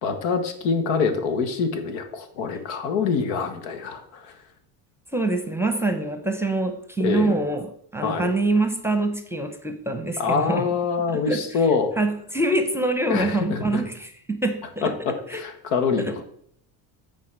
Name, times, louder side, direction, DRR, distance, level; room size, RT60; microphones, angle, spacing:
voice 1, 0.0-4.4 7.0-7.3 8.0-8.3 10.2-11.9 13.1-13.8 14.8-16.2, left 5 dB, 90° left, 7 dB, 1.6 m, -25 dB
voice 2, 5.1-10.7 11.1-11.4 12.0-14.9 15.3-15.4 16.0-16.1, right 2 dB, 5° right, 8 dB, 0.7 m, -25 dB
9.3 x 4.3 x 6.7 m, 0.67 s
cardioid pair, 125°, 47 cm